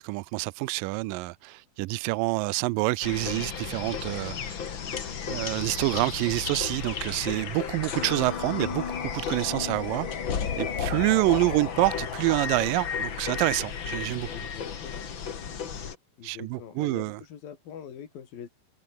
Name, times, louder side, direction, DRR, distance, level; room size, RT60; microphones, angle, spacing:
voice 1, 0.0-4.6 5.3-10.1 10.6-14.3 16.2-17.2, right 22 dB, 80° right, 2.2 m, -27 dB
sound 1, 3.0-15.9, left 7 dB, 40° left, 2.2 m, -33 dB
voice 2, 14.3-15.0 16.2-18.5, left 8 dB, 85° left, 4.6 m, -43 dB
omnidirectional pair, 4.0 m